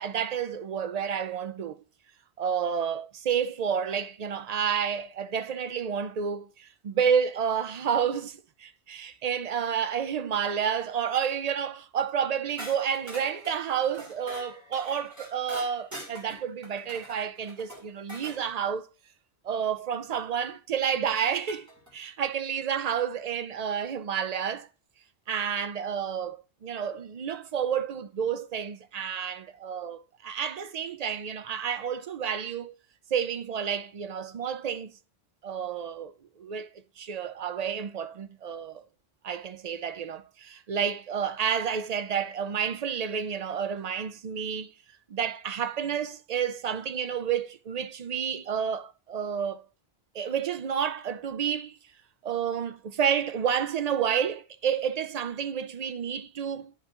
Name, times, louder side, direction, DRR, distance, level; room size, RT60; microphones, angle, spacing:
voice 1, 0.0-1.8 2.4-18.9 19.4-24.7 25.3-32.7 33.1-34.9 35.4-36.1 36.4-36.7 37.0-38.8 39.2-44.7 45.1-49.6 50.1-51.8 52.2-56.7, right 7 dB, 55° right, 0.5 m, -30 dB
sound 1, 12.6-18.4 20.4-20.5 21.5-21.9, right 1 dB, 15° right, 2.1 m, -44 dB
11.0 x 5.4 x 2.4 m
omnidirectional pair, 1.1 m